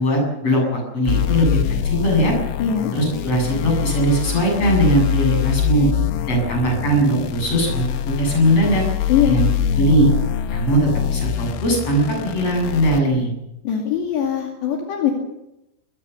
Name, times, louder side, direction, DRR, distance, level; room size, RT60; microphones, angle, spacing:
voice 1, 0.0-2.3 2.9-5.9 6.3-8.8 9.3-9.5 9.8-10.1 10.5-13.3, right 1 dB, 30° left, 1 dB, 8.9 m, -19 dB
sound 1, 1.1-13.0, left 10 dB, 85° left, 3.6 m, -24 dB
voice 2, 2.6-2.9 9.1-9.4 13.6-15.1, left 8 dB, 70° left, 1 dB, 4.5 m, -21 dB
22.5 x 19.5 x 7.0 m, 0.89 s
omnidirectional pair, 5.4 m